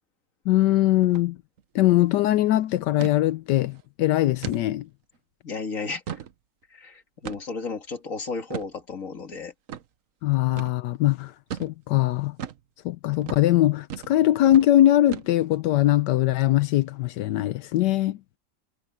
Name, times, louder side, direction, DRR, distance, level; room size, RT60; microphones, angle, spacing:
voice 1, 0.5-1.4 1.7-4.9 10.2-11.3 11.6-12.4 12.8-18.2, left 14 dB, 80° left, 1.2 m, -21 dB
sound 1, 1.0-1.3 1.6-1.7 2.0-2.3 3.0-3.2 3.7-3.8 4.4-4.6 5.1-5.2 5.8-6.3 7.3-7.6 8.5-8.7 9.7-9.9 10.6-10.8 11.5-11.7 12.4-12.6 13.2-13.5 13.9-14.2 14.5-14.7 15.1-15.6, right 8 dB, 55° right, 1.2 m, -36 dB
voice 2, 5.4-6.2 6.7-9.5, left 4 dB, 50° left, 2.3 m, -33 dB
omnidirectional pair, 1.9 m